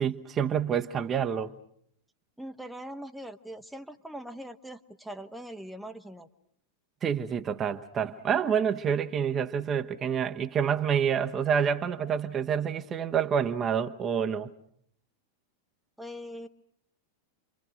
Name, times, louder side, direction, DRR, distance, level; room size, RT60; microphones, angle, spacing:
voice 1, 0.0-1.5 7.0-14.5, right 7 dB, 25° right, 1.1 m, -28 dB
voice 2, 2.4-6.3 16.0-16.5, equal, ahead, 1.1 m, -41 dB
30.0 x 24.5 x 6.3 m
figure-of-eight pair, 90°, 0 cm